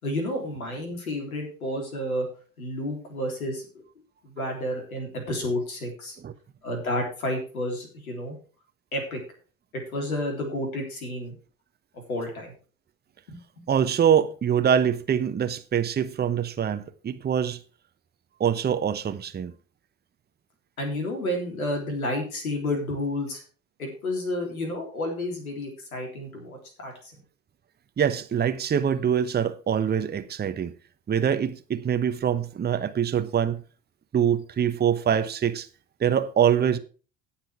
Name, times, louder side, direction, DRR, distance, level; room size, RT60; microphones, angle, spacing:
voice 1, 0.0-2.3 2.6-3.6 4.2-6.2 6.6-8.4 8.9-9.2 9.7-11.4 12.1-12.5 13.3-13.4 20.8-23.4 23.8-27.1, left 1 dB, 75° left, 3.6 m, -30 dB
voice 2, 13.7-17.6 18.4-19.5 28.0-30.7 31.1-33.6 34.1-35.7 36.0-36.8, right 8 dB, 25° right, 1.0 m, -24 dB
17.0 x 5.9 x 4.5 m
figure-of-eight pair, 60°, 43 cm